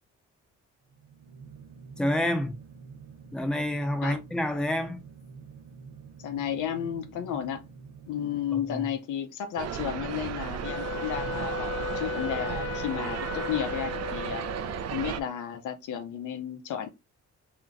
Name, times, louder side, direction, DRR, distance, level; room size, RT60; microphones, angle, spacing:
sound 1, 0.8-9.2, right 5 dB, 85° right, 0.9 m, -48 dB
voice 1, 2.0-2.6 3.3-5.0 8.7-8.8, left 1 dB, 5° left, 0.8 m, -28 dB
voice 2, 6.2-7.7 8.1-11.7 11.9-14.4 14.9-16.9, left 9 dB, 85° left, 0.9 m, -33 dB
sound 2, 9.6-15.2, right 8 dB, 55° right, 0.6 m, -34 dB
Wind instrument woodwind instrument, 10.6-15.0, left 7 dB, 45° left, 0.5 m, -36 dB
3.4 x 3.0 x 3.8 m
cardioid pair, 90°, 30 cm